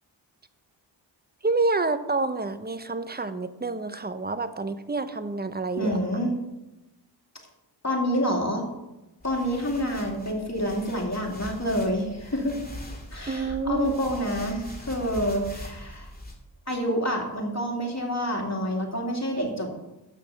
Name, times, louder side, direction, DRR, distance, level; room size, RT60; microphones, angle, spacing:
voice 1, 1.4-6.0 13.3-13.9, right 3 dB, 20° right, 11 dB, 0.8 m, -28 dB
voice 2, 5.8-6.3 7.8-8.7 9.2-12.6 13.1-16.1 16.7-19.8, equal, 35° left, 0 dB, 2.8 m, -28 dB
sound 1, 9.2-16.4, left 1 dB, 20° left, 2.3 m, -41 dB
8.5 x 6.4 x 6.8 m, 1.0 s
cardioid pair, 45°, 44 cm